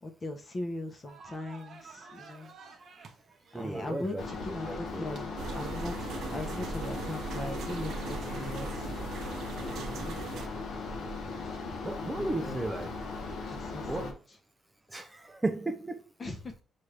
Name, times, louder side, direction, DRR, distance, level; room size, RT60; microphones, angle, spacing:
voice 1, 0.0-2.5 3.5-8.7 9.6-10.0 12.2-12.6 13.4-14.1 16.2-16.6, left 1 dB, 30° left, 5 dB, 0.8 m, -39 dB
sound 1, 1.1-9.7, right 5 dB, 50° right, 0.8 m, -54 dB
voice 2, 3.5-4.2 4.6-5.2 10.0-10.2 11.8-12.9 13.9-14.2 14.9-16.0, right 2 dB, 15° right, 5 dB, 0.4 m, -35 dB
sound 2, 4.2-14.1, left 3 dB, 65° left, 0.9 m, -38 dB
sound 3, 5.4-10.5, right 5 dB, 65° right, 0.5 m, -40 dB
6.0 x 2.5 x 3.2 m, 0.36 s
cardioid pair, 125°, 0 cm